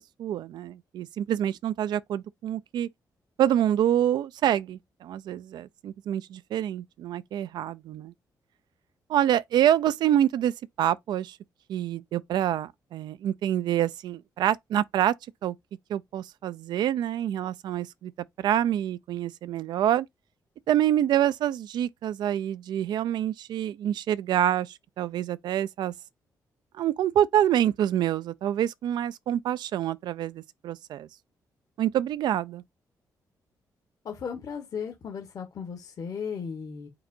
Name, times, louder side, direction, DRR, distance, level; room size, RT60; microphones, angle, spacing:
voice 1, 0.2-2.9 3.4-8.1 9.1-10.5 10.8-11.4 11.7-15.1 15.4-15.5 15.9-18.1 18.4-20.1 20.7-25.9 26.8-31.1 31.8-32.6, right 11 dB, 80° right, 0.4 m, -26 dB
voice 2, 34.0-36.9, left 6 dB, 55° left, 1.1 m, -36 dB
4.8 x 4.4 x 2.5 m
cardioid pair, 135°, 7 cm